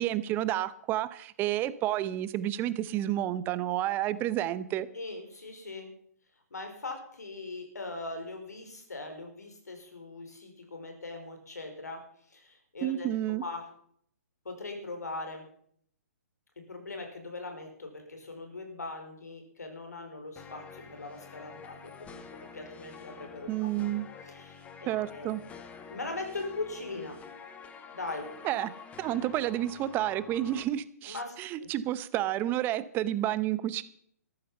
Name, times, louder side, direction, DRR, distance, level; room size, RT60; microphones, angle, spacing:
voice 1, 0.0-4.9 12.8-13.4 23.5-24.1 24.9-25.4 28.4-28.7 29.0-33.8, right 13 dB, 25° right, 16 dB, 0.8 m, -30 dB
voice 2, 4.9-5.9 6.5-13.6 14.4-15.4 16.7-22.2 22.5-23.7 24.3-25.6 25.9-27.2 27.9-28.2 31.1-31.7, left 3 dB, 80° left, 5 dB, 4.9 m, -40 dB
sound 1, 20.4-30.6, left 6 dB, 15° left, 1.5 m, -48 dB
14.0 x 12.0 x 5.5 m, 0.64 s
figure-of-eight pair, 130°, 9 cm